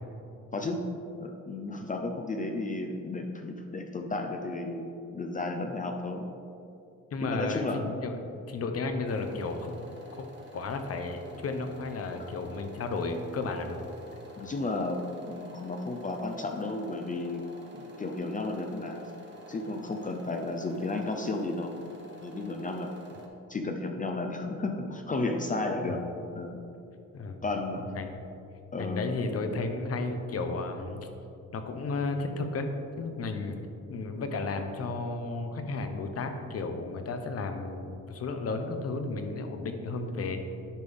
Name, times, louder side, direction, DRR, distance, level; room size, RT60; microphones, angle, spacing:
voice 1, 0.5-0.9 1.2-6.3 7.2-7.8 14.4-17.4 17.7-19.1 19.5-21.7 22.2-22.9 23.5-26.0 26.4-26.6 27.4-27.8 28.7-29.0, left 2 dB, 25° left, 3 dB, 0.6 m, -33 dB
voice 2, 7.1-8.2 8.5-10.3 10.5-13.8 25.8-25.9 27.1-27.4 27.8-28.2 28.8-31.1 31.5-32.7 33.0-33.6 33.9-40.4, left 3 dB, 50° left, 6 dB, 0.9 m, -33 dB
sound 1, 9.0-23.3, equal, 40° right, 1.4 m, -49 dB
10.5 x 5.2 x 3.6 m, 2.7 s
cardioid pair, 90°, 30 cm